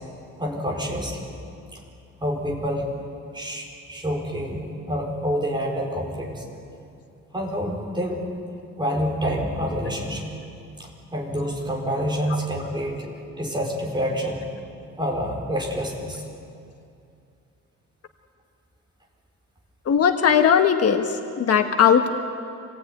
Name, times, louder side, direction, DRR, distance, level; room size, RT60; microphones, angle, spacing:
voice 1, 0.4-1.3 1.7-1.8 2.2-3.0 3.3-6.4 7.3-8.2 8.8-10.3 10.8-13.1 13.4-14.4 15.0-16.2, equal, 15° right, -1 dB, 5.0 m, -27 dB
voice 2, 19.9-22.1, left 8 dB, 55° left, 5 dB, 1.4 m, -18 dB
27.0 x 18.5 x 9.5 m, 2.6 s
cardioid pair, 160°, 29 cm